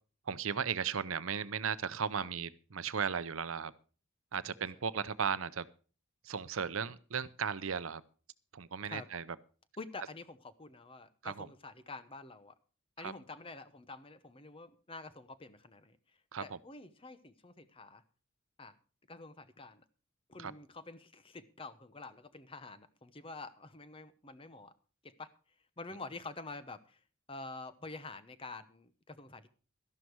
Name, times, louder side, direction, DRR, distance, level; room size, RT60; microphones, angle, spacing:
voice 1, 0.3-3.7 4.3-5.7 6.2-8.0 8.5-9.2 11.2-11.5 13.0-13.1 16.3-16.6 20.4-20.5, right 6 dB, 75° right, 16 dB, 0.7 m, -36 dB
voice 2, 9.8-12.5 13.0-16.0 16.4-18.0 18.6-18.8 19.1-19.8 20.3-24.7 25.0-25.3 25.8-27.0 27.3-29.5, left 3 dB, 25° left, 12 dB, 1.0 m, -48 dB
13.0 x 11.5 x 4.7 m, 0.38 s
head